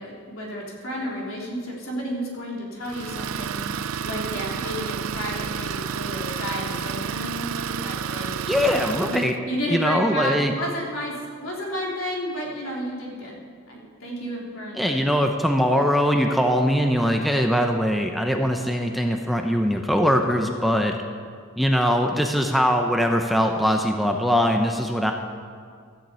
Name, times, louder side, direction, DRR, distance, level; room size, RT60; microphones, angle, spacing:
voice 1, 0.0-8.7 9.1-13.4 13.7-15.2, equal, 75° left, -3 dB, 3.3 m, -32 dB
Idling, 2.8-9.4, right 7 dB, 80° right, 0.4 m, -30 dB
voice 2, 8.5-9.3 9.7-10.5 14.7-21.0 21.6-25.1, equal, ahead, 3 dB, 0.6 m, -21 dB
14.0 x 7.4 x 8.1 m, 2.1 s
head